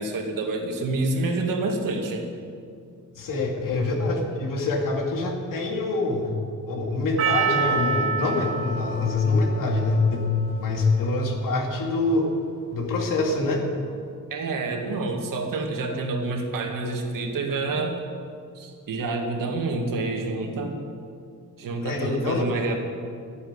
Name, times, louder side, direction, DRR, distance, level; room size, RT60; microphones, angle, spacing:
voice 1, 0.0-2.2 14.3-18.0 18.6-20.8 21.6-22.7, right 3 dB, 70° right, 3 dB, 2.1 m, -28 dB
voice 2, 3.2-6.3 6.7-10.3 10.6-12.3 12.7-13.6 21.8-22.5, left 3 dB, 70° left, 1 dB, 2.7 m, -25 dB
Percussion, 7.2-11.7, right 6 dB, 40° right, 1.9 m, -29 dB
13.5 x 9.0 x 9.6 m, 2.3 s
wide cardioid pair, 165°, 34 cm